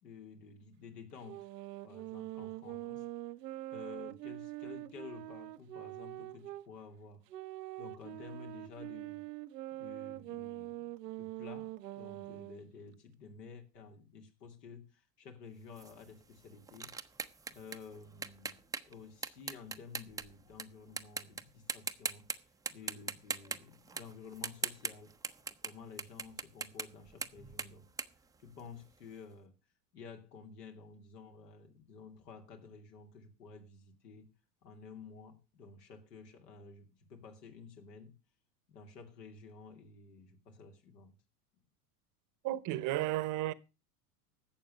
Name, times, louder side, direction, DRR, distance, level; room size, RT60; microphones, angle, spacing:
voice 1, 0.0-1.5 1.8-3.1 3.7-7.2 7.8-9.3 9.8-17.0 17.5-25.1 25.6-27.9 28.4-29.6 29.9-34.3 34.6-38.1 38.7-41.2, left 5 dB, 75° left, 2.9 m, -52 dB
sound 1, 1.2-6.7 7.3-12.6, right 16 dB, 85° right, 0.8 m, -44 dB
sound 2, 15.8-20.6 21.0-21.4 21.7-22.4 22.7-29.0, right 5 dB, 10° right, 0.6 m, -40 dB
voice 2, 42.4-43.5, right 15 dB, 40° right, 0.9 m, -33 dB
12.0 x 7.7 x 6.5 m
hypercardioid pair, 95°, 48 cm